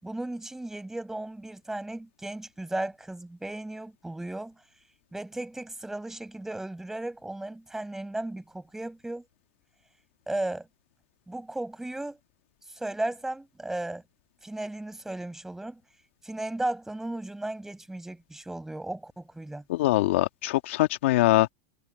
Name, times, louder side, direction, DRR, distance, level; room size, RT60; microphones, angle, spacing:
voice 1, 0.0-4.5 5.1-9.3 10.3-10.7 11.3-12.2 12.7-14.0 14.4-15.8 16.2-19.6, right 2 dB, 5° right, 6.4 m, -35 dB
voice 2, 19.7-21.5, left 16 dB, 75° left, 1.8 m, -23 dB
supercardioid pair, 115°, 7 cm